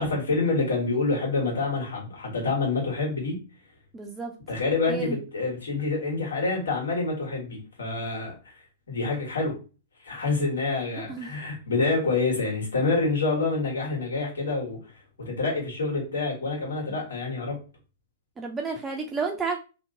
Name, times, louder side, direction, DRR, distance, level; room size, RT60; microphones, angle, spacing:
voice 1, 0.0-3.4 4.5-9.5 10.0-14.8 15.2-17.6, left 3 dB, 90° left, -1 dB, 1.4 m, -27 dB
voice 2, 3.9-4.3 4.9-5.2 11.0-11.3 16.9-17.0 18.4-19.6, right 4 dB, 15° right, 2 dB, 0.4 m, -31 dB
2.8 x 2.2 x 3.6 m, 0.33 s
hypercardioid pair, 135°, 0 cm